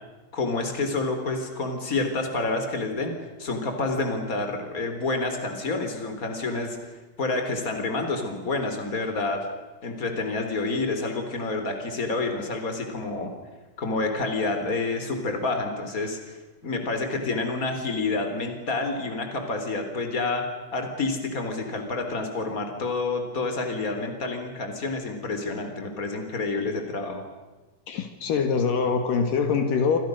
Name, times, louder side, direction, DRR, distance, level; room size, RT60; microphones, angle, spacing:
voice 1, 0.3-3.1 3.4-6.8 7.2-9.5 9.8-13.3 13.8-16.4 16.6-20.4 20.7-27.2, left 3 dB, 25° left, 5 dB, 4.0 m, -28 dB
voice 2, 27.9-30.0, left 5 dB, 70° left, 7 dB, 3.4 m, -24 dB
29.0 x 26.0 x 6.5 m, 1.2 s
omnidirectional pair, 4.1 m